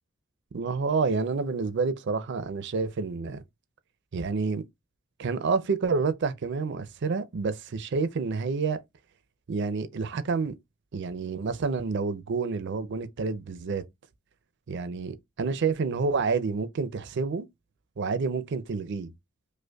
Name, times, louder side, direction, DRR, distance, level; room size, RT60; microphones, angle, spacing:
voice 1, 0.5-3.4 4.1-4.6 5.2-8.8 9.5-10.5 10.9-13.8 14.7-17.5 18.0-19.1, right 4 dB, 60° right, 0.4 m, -28 dB
5.0 x 2.1 x 2.3 m
head